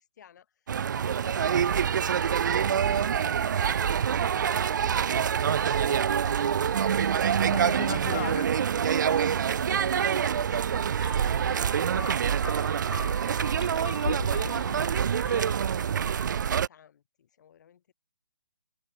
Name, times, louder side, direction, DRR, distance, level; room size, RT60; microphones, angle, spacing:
voice 1, 0.0-3.2 5.4-8.1 9.2-13.1 13.8-17.9, left 9 dB, 45° left, 7.9 m, -53 dB
sound 1, 0.7-16.7, right 8 dB, 50° right, 1.6 m, -26 dB
voice 2, 7.4-8.5 14.6-14.8, left 19 dB, 30° left, 8.0 m, -37 dB
sound 2, 11.0-15.8, left 4 dB, 70° left, 3.3 m, -40 dB
figure-of-eight pair, 145°, 13 cm